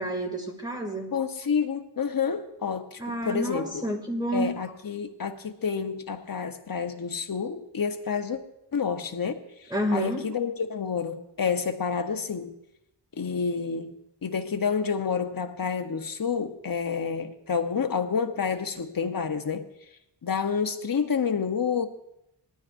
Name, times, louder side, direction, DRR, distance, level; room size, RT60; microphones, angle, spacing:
voice 1, 0.0-1.1 3.0-4.5 9.7-10.2, right 1 dB, 10° right, 1 dB, 2.5 m, -29 dB
voice 2, 1.1-3.8 4.3-8.4 8.7-12.5 13.2-13.9 14.2-19.7 20.2-21.9, left 6 dB, 50° left, 7 dB, 1.0 m, -29 dB
19.5 x 13.0 x 2.6 m, 0.84 s
wide cardioid pair, 110°, 45 cm